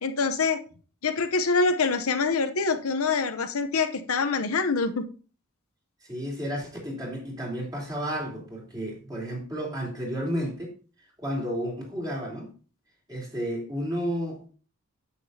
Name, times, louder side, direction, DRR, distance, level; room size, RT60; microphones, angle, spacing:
voice 1, 0.0-0.6 1.0-5.1, left 4 dB, 80° left, 0.8 m, -25 dB
voice 2, 6.0-10.7 11.2-12.5 13.1-14.4, equal, 20° right, 3.4 m, -32 dB
9.6 x 7.6 x 2.7 m
head